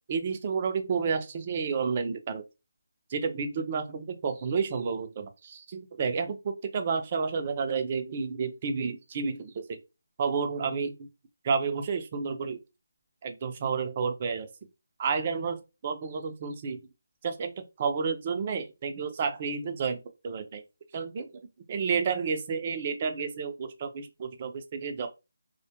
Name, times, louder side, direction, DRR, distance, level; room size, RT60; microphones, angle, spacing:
voice 1, 0.1-2.4 3.1-9.6 10.2-11.0 11.4-12.6 13.2-14.5 15.0-16.8 17.2-17.5 17.8-20.6 20.9-21.4 21.7-25.1, right 5 dB, 35° right, 0.4 m, -30 dB
2.2 x 2.1 x 2.8 m
figure-of-eight pair, 160°, 0 cm